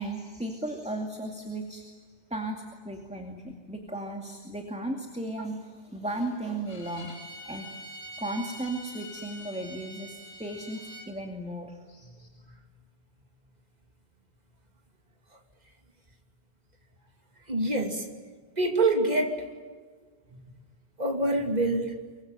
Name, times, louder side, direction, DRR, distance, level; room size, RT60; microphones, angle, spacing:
voice 1, 0.0-7.2 7.4-7.8 8.2-12.3, right 1 dB, 5° right, 2 dB, 2.4 m, -36 dB
Bowed string instrument, 6.6-11.1, equal, 60° left, 4.6 m, -45 dB
voice 2, 17.5-18.1 18.6-19.4 21.0-21.9, right 2 dB, 35° right, 3 dB, 2.9 m, -25 dB
24.5 x 24.0 x 9.2 m, 1.5 s
omnidirectional pair, 1.2 m